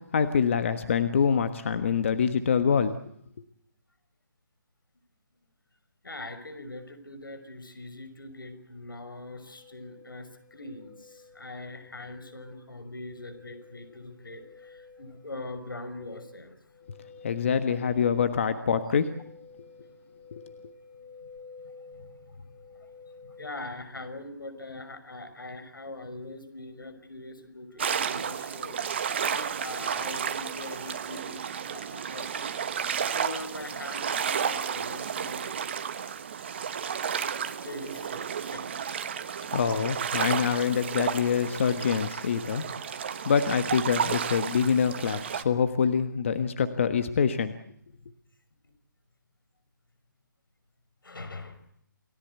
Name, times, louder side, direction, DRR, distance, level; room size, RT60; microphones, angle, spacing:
voice 1, 0.1-3.0 17.2-19.1 20.3-20.4 39.5-47.5, left 6 dB, 35° left, 9 dB, 1.4 m, -25 dB
voice 2, 6.0-16.6 21.0-21.3 21.6-35.6 37.4-39.0 51.0-51.6, left 2 dB, 90° left, 11 dB, 5.8 m, -42 dB
sound 1, 9.3-23.5, left 4 dB, 10° left, 5.8 m, -51 dB
sound 2, 27.8-45.4, right 7 dB, 30° right, 1.1 m, -32 dB
28.5 x 17.5 x 8.2 m, 0.68 s
hypercardioid pair, 170°, 11 cm